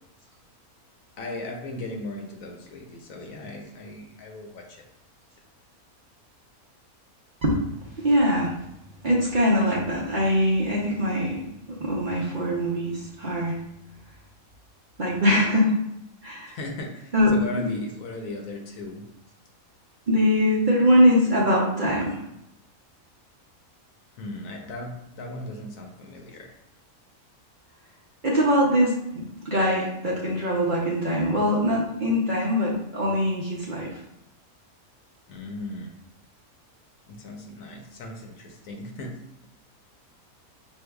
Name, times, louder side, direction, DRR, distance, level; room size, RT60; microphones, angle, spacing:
voice 1, 1.2-4.8 16.5-19.0 24.2-26.5 35.3-35.9 37.1-39.1, left 2 dB, 70° left, 2 dB, 1.1 m, -37 dB
voice 2, 7.9-8.6 9.0-11.4 11.7-13.6 15.0-15.7 16.2-16.6 17.1-17.7 20.1-22.2 28.2-34.0, equal, 45° right, -6 dB, 0.7 m, -22 dB
6.3 x 2.7 x 2.3 m, 0.82 s
omnidirectional pair, 1.5 m